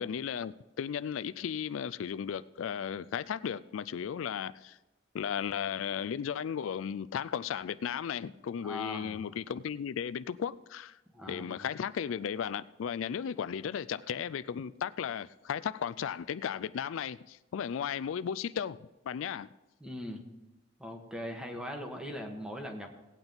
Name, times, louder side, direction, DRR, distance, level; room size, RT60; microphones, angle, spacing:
voice 1, 0.0-4.8 5.1-11.0 11.3-19.5, left 8 dB, 85° left, 0.4 m, -35 dB
voice 2, 8.6-9.3 11.1-11.7 19.8-20.2 20.8-22.9, left 1 dB, 5° right, 1.3 m, -40 dB
17.5 x 9.0 x 3.9 m
head